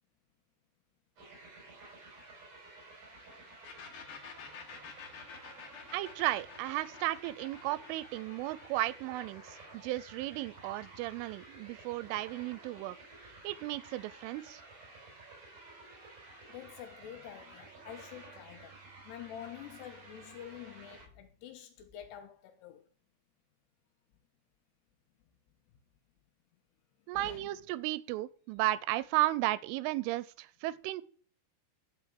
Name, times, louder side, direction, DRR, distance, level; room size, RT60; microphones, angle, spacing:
sound 1, 1.2-21.1, right 3 dB, 40° right, 6.5 m, -53 dB
sound 2, 3.6-11.2, left 7 dB, 60° left, 2.4 m, -51 dB
voice 1, 5.9-13.0 13.4-14.6 27.1-31.0, right 16 dB, 90° right, 3.2 m, -34 dB
voice 2, 16.5-18.8 19.0-22.9 27.1-27.5, left 10 dB, 75° left, 2.7 m, -48 dB
11.0 x 5.7 x 7.7 m
omnidirectional pair, 5.6 m